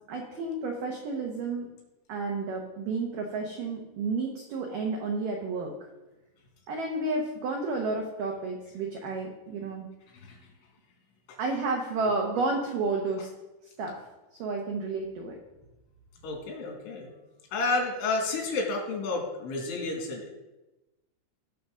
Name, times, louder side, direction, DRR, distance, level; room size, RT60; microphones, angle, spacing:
voice 1, 0.1-1.7 2.1-5.9 6.7-9.9 11.4-13.3 13.8-14.0 14.3-15.4, right 3 dB, 80° right, 1 dB, 1.9 m, -31 dB
voice 2, 16.2-17.1 17.5-20.3, left 3 dB, 85° left, 1 dB, 4.7 m, -31 dB
18.0 x 6.2 x 3.8 m, 1.0 s
omnidirectional pair, 5.4 m